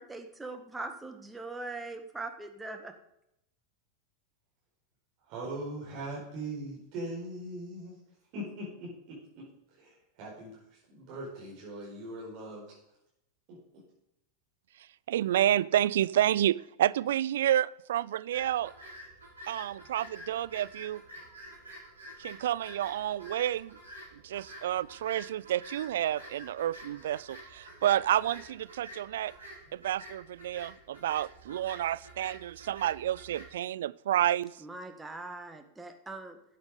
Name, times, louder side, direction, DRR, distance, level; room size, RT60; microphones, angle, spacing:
voice 1, 0.0-2.9 34.6-36.4, right 2 dB, 10° right, 6 dB, 1.3 m, -41 dB
voice 2, 5.2-8.0 8.3-9.5 9.8-12.6 13.5-13.8, right 1 dB, 50° right, -5 dB, 4.7 m, -41 dB
voice 3, 15.1-18.7 19.5-21.0 22.2-23.8 24.2-29.3 29.7-34.5, right 12 dB, 65° right, 20 dB, 0.3 m, -29 dB
sound 1, 18.3-33.5, equal, 85° right, 5.3 m, -49 dB
13.0 x 8.2 x 5.1 m, 0.82 s
figure-of-eight pair, 90°, 0 cm